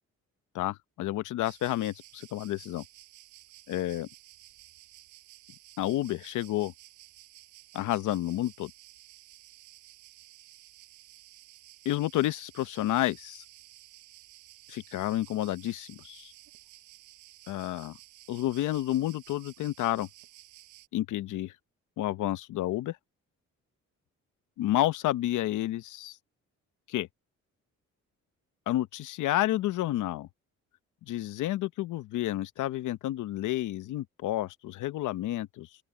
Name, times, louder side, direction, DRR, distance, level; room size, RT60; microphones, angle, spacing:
voice 1, 0.5-2.8 3.7-4.1 5.8-6.7 7.7-8.7 11.8-13.4 14.7-16.3 17.5-18.0 18.3-20.1 20.9-21.5 22.0-23.0 24.6-26.2 26.9-27.1 28.7-30.3 31.0-35.7, left 14 dB, 80° left, 0.9 m, -30 dB
sound 1, 1.4-20.9, right 16 dB, 90° right, 5.0 m, -54 dB
open air
cardioid pair, 90°, 30 cm